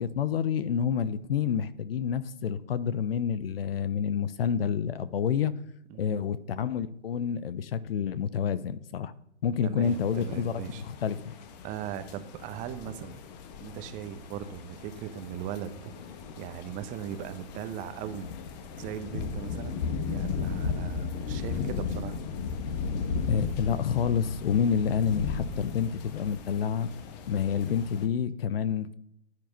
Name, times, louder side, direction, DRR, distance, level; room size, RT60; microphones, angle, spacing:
voice 1, 0.0-5.5 6.0-9.1 9.4-11.3 23.3-26.9 27.3-28.9, left 7 dB, 55° left, 16 dB, 0.9 m, -28 dB
voice 2, 5.9-6.4 9.6-10.8 11.6-13.2 13.6-15.9 16.4-18.3 18.8-22.3, right 10 dB, 20° right, 10 dB, 1.0 m, -39 dB
sound 1, 9.8-28.1, left 5 dB, 35° left, 1.5 m, -36 dB
15.0 x 9.7 x 5.2 m, 0.75 s
figure-of-eight pair, 125°, 35 cm